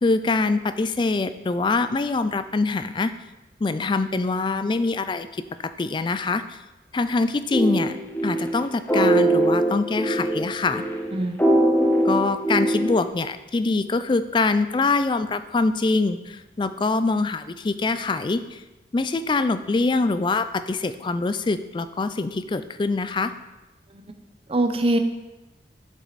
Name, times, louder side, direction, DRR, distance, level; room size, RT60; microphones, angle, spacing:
voice 1, 0.0-3.1 3.6-5.4 5.8-6.6 6.9-8.0 8.2-10.8 12.0-18.6 18.9-23.3, left 3 dB, 25° left, 12 dB, 0.3 m, -24 dB
sound 1, 7.5-13.0, right 1 dB, 10° left, 0.9 m, -22 dB
voice 2, 24.5-25.0, right 1 dB, 30° right, 7 dB, 0.6 m, -23 dB
7.4 x 7.1 x 4.0 m, 1.1 s
head